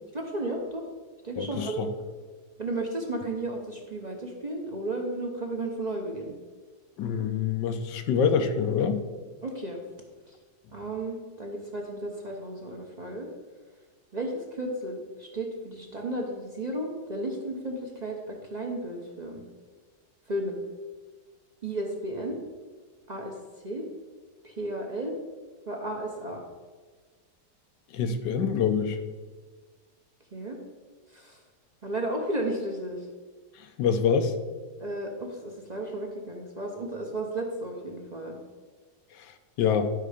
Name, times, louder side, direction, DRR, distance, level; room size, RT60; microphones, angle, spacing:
voice 1, 0.1-0.8 1.2-1.8 2.6-6.3 9.4-9.8 10.7-13.3 14.1-19.4 20.3-20.6 21.6-22.4 23.1-23.3 23.6-23.9 24.4-25.2 25.7-26.4 30.3-30.6 31.1-31.4 31.8-33.1 34.8-38.4, right 1 dB, 35° right, 1 dB, 0.7 m, -33 dB
voice 2, 1.4-1.9 7.0-9.0 27.9-29.0 33.6-34.4 39.2-39.9, left 6 dB, 80° left, 9 dB, 1.4 m, -26 dB
11.5 x 5.4 x 5.0 m, 1.4 s
omnidirectional pair, 1.9 m